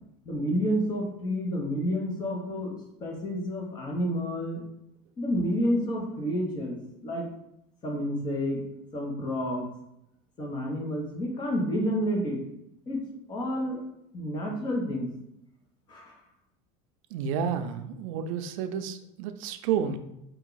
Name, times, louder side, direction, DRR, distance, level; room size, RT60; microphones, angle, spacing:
voice 1, 0.2-4.6 5.2-7.3 7.8-8.6 8.9-9.7 10.4-12.4 12.9-13.0 13.3-13.8 14.1-15.1 15.9-16.1, equal, 25° left, 0 dB, 1.1 m, -29 dB
voice 2, 17.1-20.0, right 7 dB, 85° right, 8 dB, 0.5 m, -30 dB
4.6 x 2.7 x 3.9 m, 0.82 s
cardioid pair, 160°, 17 cm